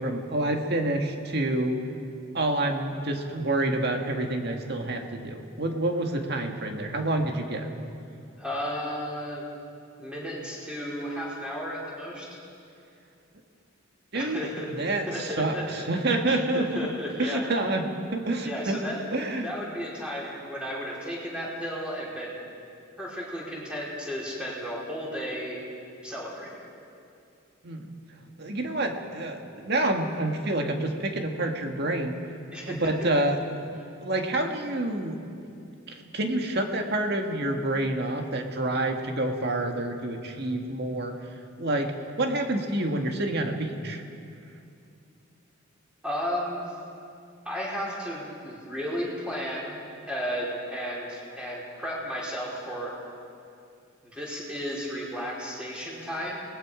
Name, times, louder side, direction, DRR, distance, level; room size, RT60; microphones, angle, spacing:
voice 1, 0.0-1.8 2.3-7.7 14.1-16.9 17.2-17.8 18.1-18.8 19.1-19.5 27.6-27.9 28.4-32.2 32.7-33.7 34.0-35.2 35.9-41.1 41.6-44.0, right 1 dB, 55° right, 3 dB, 1.9 m, -28 dB
voice 2, 8.4-9.5 10.0-12.3 14.1-14.7 15.1-15.6 16.3-17.4 18.4-19.0 19.4-22.4 23.0-25.6 26.0-26.6 32.5-32.8 46.0-46.7 47.4-49.8 50.1-52.9 54.0-56.3, equal, 5° right, -6 dB, 4.8 m, -34 dB
28.0 x 20.0 x 5.1 m, 2.5 s
head